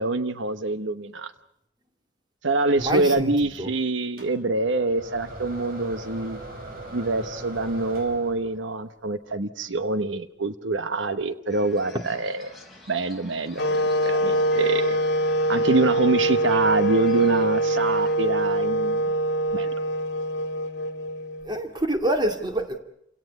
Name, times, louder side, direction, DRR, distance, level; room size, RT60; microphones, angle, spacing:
voice 1, 0.0-1.3 2.4-6.4 6.9-12.5 12.9-15.0 15.5-19.1 19.5-19.7, right 2 dB, 75° right, 1.0 m, -25 dB
voice 2, 2.8-3.3 3.6-3.7 21.4-22.8, right 1 dB, 20° right, 2.3 m, -26 dB
sound 1, 4.2-8.7, right 1 dB, 50° right, 5.1 m, -40 dB
sound 2, 11.5-18.2, left 2 dB, ahead, 4.8 m, -45 dB
sound 3, 13.6-21.6, right 1 dB, 60° left, 1.9 m, -24 dB
29.5 x 17.5 x 8.3 m
head